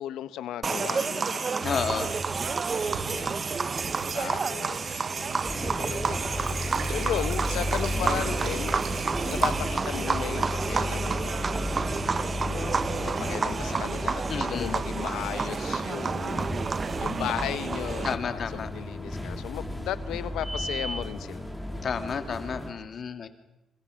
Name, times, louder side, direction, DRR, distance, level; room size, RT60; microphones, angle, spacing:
voice 1, 0.0-2.1 3.1-3.3 4.1-5.1 5.8-6.2 6.8-11.7 12.4-16.7 17.0-21.4, left 11 dB, 85° left, 14 dB, 1.1 m, -36 dB
sound 1, 0.6-18.1, right 5 dB, 35° right, 0.9 m, -30 dB
voice 2, 1.6-2.1 14.3-14.8 18.0-18.7 21.8-23.3, left 6 dB, 50° left, 8 dB, 2.4 m, -31 dB
Child speech kid speaking / Bird vocalization bird call bird song / Stream, 1.6-9.6, right 5 dB, 80° right, 6.5 m, -40 dB
sound 2, 5.5-22.7, left 1 dB, ahead, 4.6 m, -34 dB
27.0 x 26.5 x 6.5 m, 0.95 s
cardioid pair, 90°, 0 cm